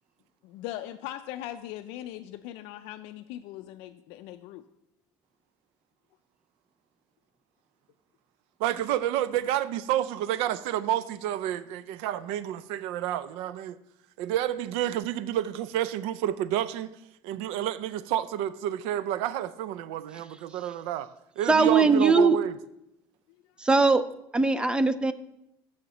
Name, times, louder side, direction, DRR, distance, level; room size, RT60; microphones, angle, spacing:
voice 1, 0.4-4.6, left 13 dB, 75° left, 0.4 m, -40 dB
voice 2, 8.6-13.8 14.2-16.9 17.2-21.1 21.4-22.6, right 11 dB, 80° right, 0.4 m, -29 dB
voice 3, 21.5-22.4 23.6-24.0 24.3-25.1, right 4 dB, 10° right, 0.3 m, -20 dB
6.9 x 6.5 x 6.0 m
cardioid pair, 160°, 10 cm